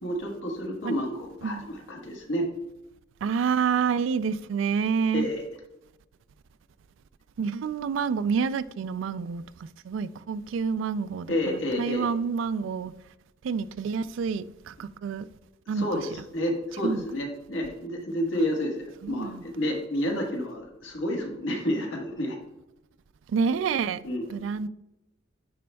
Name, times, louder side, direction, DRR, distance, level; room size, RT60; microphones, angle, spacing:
voice 1, 0.0-2.5 5.1-5.4 11.3-12.1 15.8-22.4 24.0-24.2, equal, 85° left, 1.4 m, -30 dB
voice 2, 3.2-5.3 7.4-9.4 9.8-12.9 13.4-15.3 15.7-16.1 16.8-17.0 19.0-19.4 23.3-24.0 24.3-24.7, right 6 dB, 75° right, 0.3 m, -28 dB
10.0 x 4.3 x 2.3 m
head